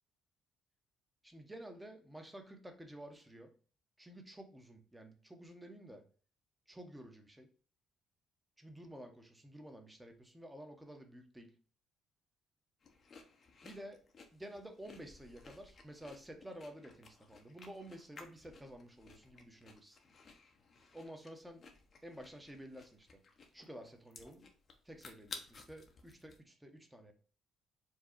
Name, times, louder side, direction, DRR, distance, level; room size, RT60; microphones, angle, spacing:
voice 1, 1.2-3.5 4.0-6.0 6.7-7.5 8.6-11.5 13.6-14.0 14.3-20.0 20.9-21.6 22.0-23.1 23.5-24.4 24.8-27.1, right 1 dB, 5° right, 4 dB, 0.9 m, -51 dB
sound 1, 12.8-26.4, left 4 dB, 40° left, 0.8 m, -56 dB
4.6 x 2.3 x 4.5 m, 0.40 s
cardioid pair, 100°, 0 cm